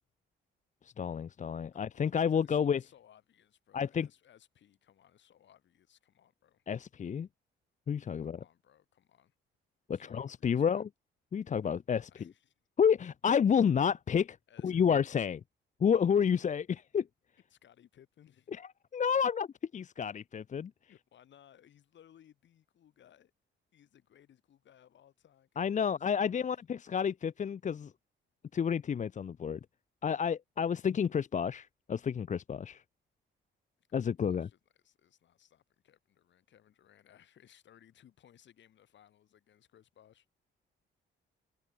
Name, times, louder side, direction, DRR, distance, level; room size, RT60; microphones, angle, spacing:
voice 1, 1.0-2.8 3.7-4.1 6.7-7.3 7.9-8.4 9.9-10.9 11.3-12.1 12.8-14.4 14.6-15.4 15.8-17.1 18.9-19.5 19.7-20.7 25.6-27.9 28.5-29.6 30.0-32.8 33.9-34.5, left 7 dB, 40° left, 0.7 m, -30 dB
voice 2, 1.7-6.7 8.2-9.3 9.9-10.9 12.1-12.5 14.5-14.9 17.5-18.6 20.9-23.3 23.7-26.7 33.8-40.3, left 10 dB, 65° left, 7.8 m, -63 dB
cardioid pair, 90°, 20 cm